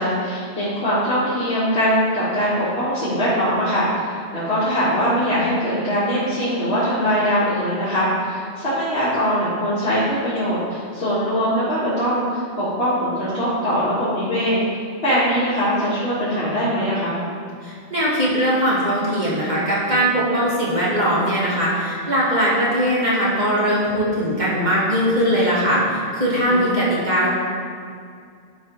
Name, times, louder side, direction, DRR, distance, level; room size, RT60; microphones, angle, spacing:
voice 1, 0.0-14.6 15.0-17.2 26.5-26.7, equal, 60° left, -13 dB, 2.5 m, -22 dB
voice 2, 17.6-27.3, equal, 40° right, -8 dB, 2.4 m, -20 dB
11.0 x 5.4 x 4.8 m, 2.3 s
omnidirectional pair, 1.2 m